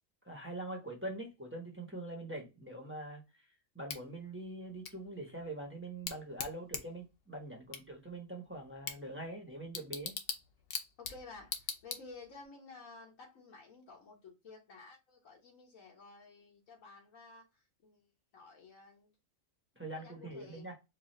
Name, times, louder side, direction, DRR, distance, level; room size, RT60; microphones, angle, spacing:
voice 1, 0.2-3.5 3.7-10.2 19.8-20.7, right 1 dB, 10° right, 0.9 m, -43 dB
Bicycle / Tick, 3.9-12.5, left 6 dB, 55° left, 0.8 m, -44 dB
voice 2, 11.0-19.1 19.9-20.7, left 4 dB, 90° left, 1.7 m, -53 dB
4.6 x 2.4 x 3.1 m
omnidirectional pair, 1.4 m